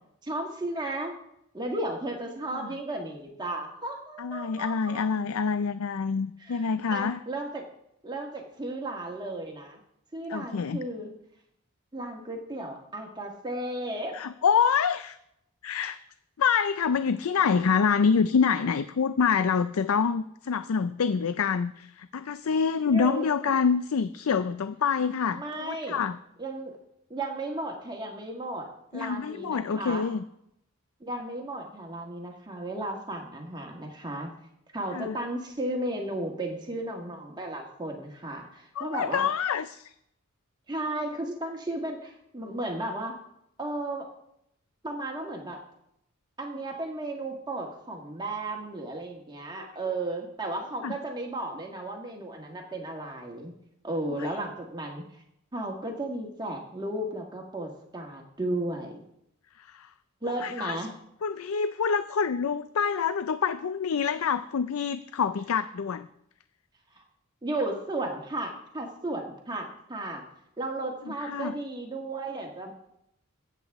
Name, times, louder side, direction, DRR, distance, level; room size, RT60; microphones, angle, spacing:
voice 1, 0.2-1.1 1.5-5.1 6.4-7.7 8.0-9.8 10.1-11.1 11.9-14.2 22.9-23.6 25.3-26.0 26.4-26.8 27.1-30.1 31.0-34.3 34.7-39.3 40.7-43.2 43.6-44.1 44.8-45.6 46.4-53.5 53.8-55.0 55.5-59.0 60.2-60.9 66.9-67.0 67.4-70.2 70.6-72.7, right 1 dB, 20° right, 1 dB, 1.6 m, -34 dB
voice 2, 4.2-7.2 10.3-10.8 14.1-15.2 15.6-16.0 16.4-26.2 28.9-30.2 34.9-35.2 38.8-39.9 49.6-49.7 50.8-50.9 54.2-54.3 59.6-59.9 60.2-60.8 61.2-66.1 71.2-71.5, left 6 dB, 85° left, 13 dB, 0.4 m, -26 dB
22.5 x 8.3 x 3.6 m, 0.79 s
head